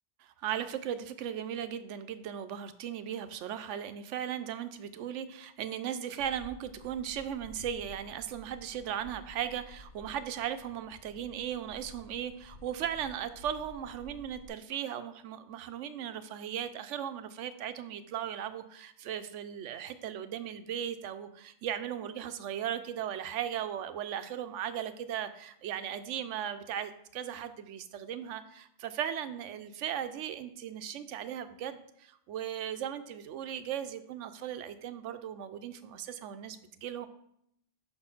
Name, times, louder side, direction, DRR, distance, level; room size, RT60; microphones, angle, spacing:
voice 1, 0.3-37.1, right 9 dB, 90° right, 11 dB, 0.9 m, -37 dB
sound 1, 6.2-14.5, left 2 dB, 55° left, 0.7 m, -53 dB
5.5 x 4.4 x 5.8 m, 0.74 s
omnidirectional pair, 1.2 m